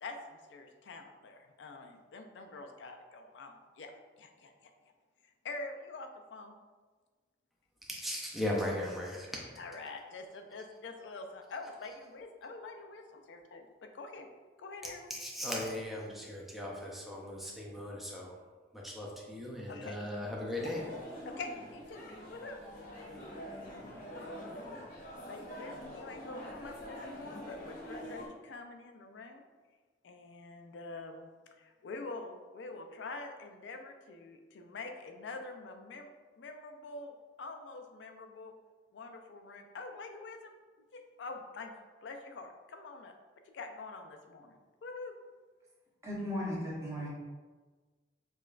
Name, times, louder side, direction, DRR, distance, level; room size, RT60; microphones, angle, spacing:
voice 1, 0.0-4.7 5.4-6.6 9.6-14.3 14.6-15.1 19.7-20.0 21.2-22.6 23.3-23.6 24.0-24.7 25.2-29.4 30.0-31.3 31.6-36.1 36.4-38.5 38.9-40.5 40.9-41.7 42.0-43.1 43.4-45.2, left 3 dB, 80° left, 5 dB, 0.4 m, -46 dB
voice 2, 7.8-9.3 15.1-18.4 18.7-20.8, left 1 dB, ahead, -3 dB, 0.4 m, -37 dB
sound 1, 20.5-28.3, equal, 55° left, 0.8 m, -45 dB
voice 3, 46.0-47.1, left 1 dB, 15° right, -6 dB, 0.8 m, -36 dB
4.9 x 2.3 x 2.4 m, 1.4 s
head